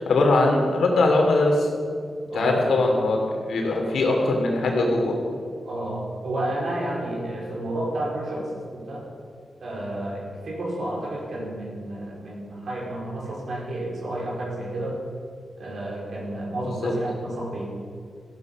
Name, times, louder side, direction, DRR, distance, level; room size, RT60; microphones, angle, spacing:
voice 1, 0.0-1.7 2.3-3.2 3.5-5.2 16.8-16.9, left 2 dB, 90° left, 1 dB, 3.0 m, -21 dB
voice 2, 2.3-2.7 5.6-9.1 9.6-15.0 15.6-17.7, right 1 dB, 65° right, -2 dB, 4.6 m, -31 dB
14.5 x 11.5 x 6.0 m, 2.1 s
wide cardioid pair, 95°, 0 cm